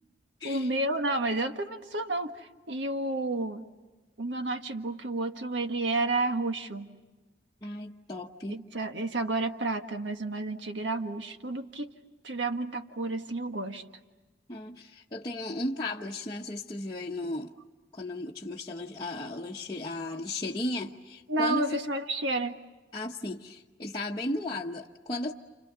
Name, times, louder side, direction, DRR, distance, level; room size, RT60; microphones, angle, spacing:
voice 1, 0.4-3.6 4.2-6.9 8.5-11.9 12.2-13.8 21.3-22.6, right 2 dB, 80° right, 1.5 m, -31 dB
voice 2, 7.6-8.6 14.5-17.5 17.9-21.6 22.9-25.3, left 2 dB, 25° left, 1.1 m, -35 dB
30.0 x 29.0 x 6.8 m
head